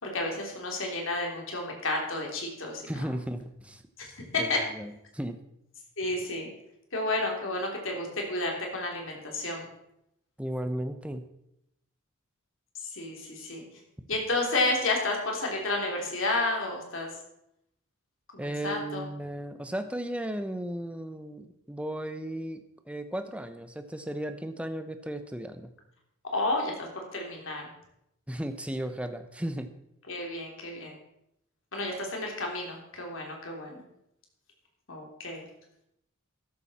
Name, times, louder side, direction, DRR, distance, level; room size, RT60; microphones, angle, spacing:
voice 1, 0.0-3.1 4.0-4.6 6.0-6.5 6.9-9.7 12.9-13.6 14.1-17.1 18.3-19.1 26.3-27.7 30.1-31.0 31.7-33.8 34.9-35.5, left 2 dB, 65° left, 0 dB, 3.4 m, -31 dB
voice 2, 2.9-3.8 4.4-5.4 10.4-11.2 18.4-22.6 22.9-25.7 28.3-29.7, right 1 dB, 5° right, 8 dB, 0.9 m, -35 dB
13.5 x 11.5 x 4.3 m, 0.81 s
head